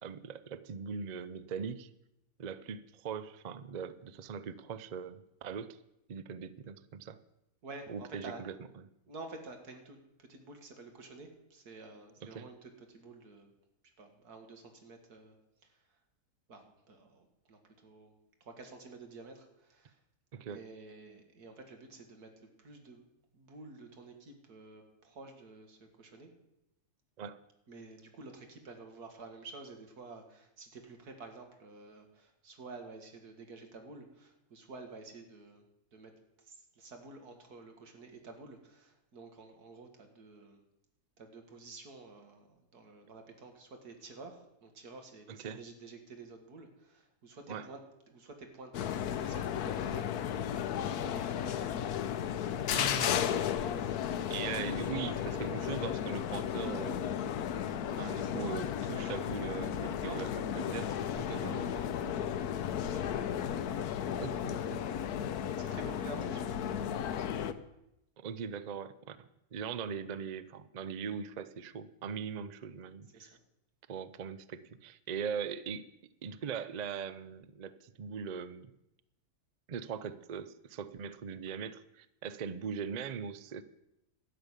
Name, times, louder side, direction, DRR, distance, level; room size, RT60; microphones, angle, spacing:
voice 1, 0.0-1.9 2.4-5.8 6.1-7.2 7.9-8.9 12.2-12.5 20.3-20.6 27.2-27.4 45.3-45.6 47.5-47.7 52.7-53.3 54.3-57.1 58.0-60.3 60.5-60.9 61.2-61.4 64.2-64.9 68.2-73.4 73.9-75.9 76.2-78.7 79.7-83.6, right 7 dB, 55° right, 14 dB, 0.4 m, -40 dB
voice 2, 7.6-8.4 9.1-13.5 14.0-15.4 15.6-15.7 16.5-18.1 18.4-20.0 20.5-23.0 23.3-26.3 27.7-35.6 35.9-36.1 36.4-40.6 41.2-47.8 48.1-52.2 60.0-60.9 61.3-62.2 62.5-63.3 63.6-64.0 65.3-67.3 73.1-73.3, right 3 dB, 85° right, 5 dB, 2.4 m, -50 dB
sound 1, 48.7-67.5, left 9 dB, 85° left, 1.3 m, -34 dB
12.5 x 6.9 x 9.8 m, 0.86 s
omnidirectional pair, 1.6 m